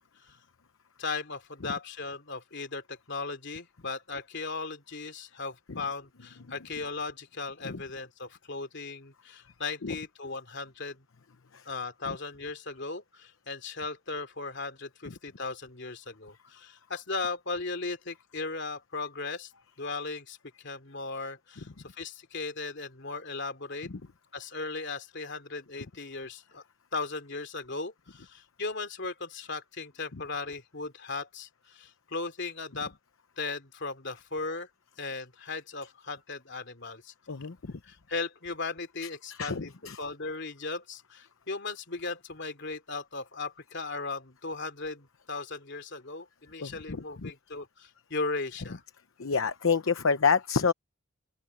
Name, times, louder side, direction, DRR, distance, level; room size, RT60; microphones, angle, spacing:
voice 1, 1.0-11.0 11.6-19.5 19.8-21.7 22.0-23.9 24.3-26.6 26.9-32.9 33.4-34.7 35.0-37.1 37.8-39.7 40.0-48.8, left 3 dB, 60° left, 2.9 m, -37 dB
voice 2, 37.3-37.7 39.3-40.0 46.6-47.3 49.2-50.7, left 5 dB, 90° left, 0.9 m, -28 dB
open air
head